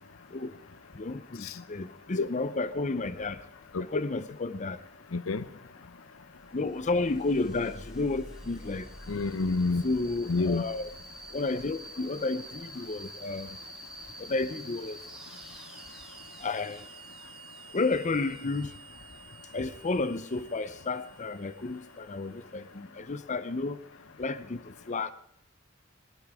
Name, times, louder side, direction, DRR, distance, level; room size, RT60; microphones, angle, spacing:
voice 1, 0.9-3.4 3.9-4.8 6.5-8.9 9.8-10.9 11.3-13.5 14.2-15.0 16.4-16.8 17.7-18.7 19.5-23.8 24.2-25.1, left 3 dB, 35° left, 0.6 m, -31 dB
voice 2, 5.1-5.4 9.1-9.8 10.3-10.7, left 3 dB, 80° left, 0.7 m, -28 dB
sound 1, 6.3-22.6, right 1 dB, 5° right, 4.6 m, -48 dB
20.0 x 19.0 x 3.6 m
head